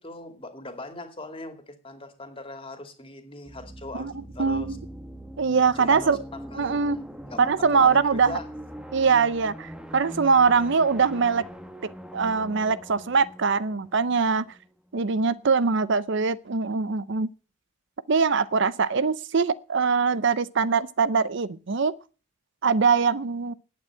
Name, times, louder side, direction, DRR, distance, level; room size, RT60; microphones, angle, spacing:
voice 1, 0.0-4.8 5.7-6.2 6.5-8.5, left 2 dB, 25° left, 2.4 m, -40 dB
sound 1, 3.5-15.0, equal, 5° right, 1.1 m, -42 dB
voice 2, 4.4-4.8 5.4-6.2 6.6-7.0 7.4-8.4 8.9-11.5 12.1-14.5 14.9-17.3 18.1-21.9 22.6-23.5, right 5 dB, 55° right, 0.6 m, -22 dB
11.0 x 9.0 x 8.9 m
head